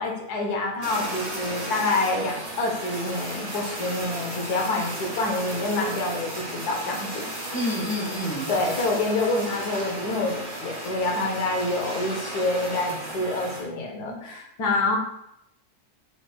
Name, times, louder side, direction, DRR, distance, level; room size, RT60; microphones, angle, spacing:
voice 1, 0.0-7.4 8.5-15.0, left 2 dB, 85° left, 1 dB, 1.5 m, -27 dB
Fire, 0.8-13.6, right 1 dB, 55° right, 1.8 m, -34 dB
voice 2, 7.5-8.5 12.9-13.0, equal, 10° left, -3 dB, 1.0 m, -29 dB
7.3 x 3.2 x 2.2 m, 0.80 s
omnidirectional pair, 1.6 m